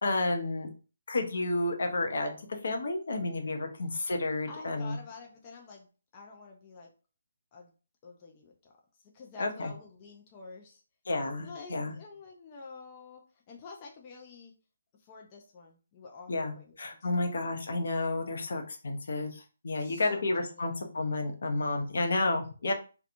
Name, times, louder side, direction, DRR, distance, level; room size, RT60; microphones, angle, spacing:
voice 1, 0.0-0.7 1.1-5.0 9.4-9.7 11.1-11.9 16.3-22.7, left 2 dB, 65° left, 4 dB, 0.6 m, -31 dB
voice 2, 4.5-5.9 6.1-6.9 7.5-7.7 8.0-8.7 9.1-10.8 11.4-13.2 13.5-14.5 15.0-16.8 17.2-17.3 19.8-20.7 22.6-22.7, left 4 dB, 25° left, 0 dB, 0.4 m, -48 dB
2.8 x 2.2 x 2.5 m, 0.36 s
hypercardioid pair, 165°, 0 cm